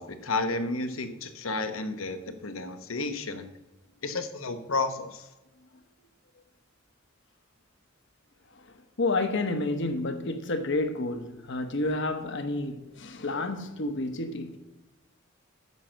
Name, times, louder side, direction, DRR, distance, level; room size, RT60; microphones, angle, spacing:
voice 1, 0.0-3.5 4.0-5.3, left 3 dB, 85° left, 1.1 m, -32 dB
voice 2, 8.5-14.6, left 2 dB, 60° left, 1.1 m, -30 dB
9.6 x 5.9 x 6.3 m
head